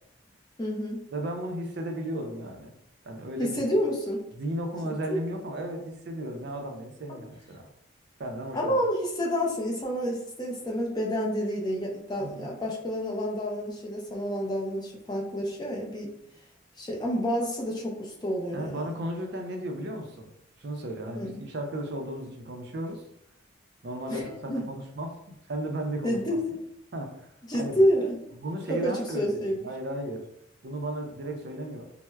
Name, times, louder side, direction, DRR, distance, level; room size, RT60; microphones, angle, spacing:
voice 1, 0.6-1.1 3.4-4.3 4.8-5.2 7.1-7.2 8.5-16.1 16.8-18.9 21.1-21.4 24.1-24.6 26.0-26.6 27.5-28.2 28.7-29.7, equal, 20° left, -2 dB, 0.5 m, -29 dB
voice 2, 1.1-2.7 3.0-3.8 4.3-7.6 8.2-8.7 12.2-12.5 18.5-20.3 20.6-23.0 23.8-25.2 25.5-26.2 26.9-27.8 28.4-30.2 30.6-31.9, right 1 dB, 55° right, 3 dB, 0.4 m, -35 dB
4.3 x 2.0 x 2.2 m, 0.78 s
head